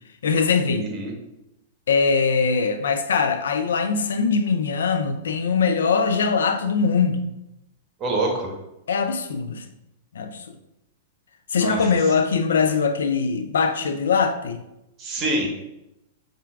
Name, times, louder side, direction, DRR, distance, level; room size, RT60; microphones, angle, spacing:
voice 1, 0.2-0.9 1.9-7.2 8.9-9.6 10.2-10.4 11.5-14.6, left 5 dB, 75° left, 0.3 m, -21 dB
voice 2, 0.8-1.1 8.0-8.5 11.5-11.8 15.0-15.5, right 2 dB, 30° right, 0.9 m, -25 dB
5.5 x 2.5 x 2.4 m
hypercardioid pair, 110°, 0 cm